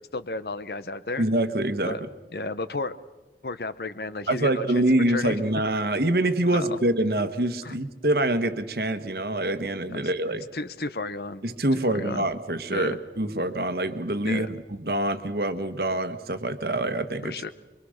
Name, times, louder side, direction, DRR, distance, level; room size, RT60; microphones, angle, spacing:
voice 1, 0.1-1.2 1.8-2.0 2.3-3.0 3.4-5.4 6.4-6.8 7.6-7.8 9.9-11.4 11.7-12.2 12.7-13.0 14.2-14.5 17.2-17.5, left 3 dB, 60° left, 13 dB, 0.9 m, -33 dB
voice 2, 1.2-1.9 4.3-10.4 11.4-14.6 14.8-17.3, right 1 dB, 60° right, 10 dB, 1.3 m, -25 dB
24.0 x 24.0 x 6.5 m, 1.2 s
head